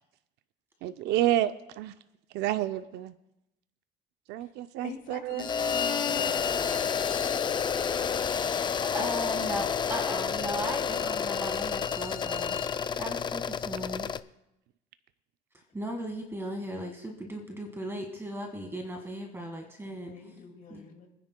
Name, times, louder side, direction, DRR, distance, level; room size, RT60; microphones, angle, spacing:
voice 1, 0.8-1.9 2.3-3.1 4.3-5.4, right 13 dB, 80° right, 11 dB, 0.5 m, -29 dB
voice 2, 4.8-6.3 8.9-9.1 19.8-21.1, left 6 dB, 50° left, 3 dB, 2.3 m, -44 dB
Bowed string instrument, 5.3-12.7, left 8 dB, 80° left, 3.2 m, -40 dB
sound 1, 5.4-14.2, left 7 dB, 25° left, 0.4 m, -30 dB
voice 3, 8.8-14.1 15.7-20.3 20.7-20.8, equal, 15° right, 2 dB, 1.6 m, -37 dB
26.0 x 9.9 x 2.2 m, 0.89 s
cardioid pair, 110°, 17 cm